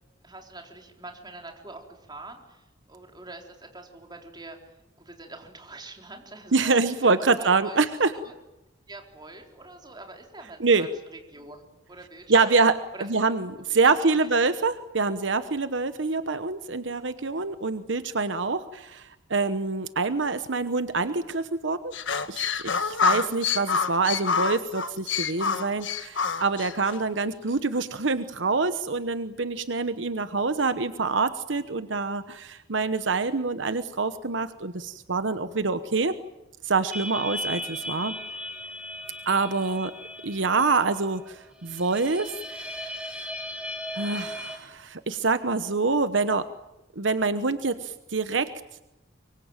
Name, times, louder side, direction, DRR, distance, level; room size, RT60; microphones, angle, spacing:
voice 1, 0.2-4.6 5.0-7.8 8.1-8.3 8.9-13.1 13.7-14.3 39.4-39.8, right 2 dB, 25° right, 3 dB, 4.1 m, -45 dB
voice 2, 6.5-8.1 10.6-10.9 12.3-12.7 13.1-21.9 22.3-36.1 36.6-38.1 39.3-39.9 40.2-43.2 43.9-46.4 47.0-48.5, right 4 dB, 70° right, 11 dB, 1.1 m, -26 dB
sound 1, 21.9-27.0, left 6 dB, 75° left, 1.5 m, -27 dB
sound 2, 36.9-44.6, equal, 5° right, 2.6 m, -37 dB
24.0 x 24.0 x 9.0 m, 0.95 s
head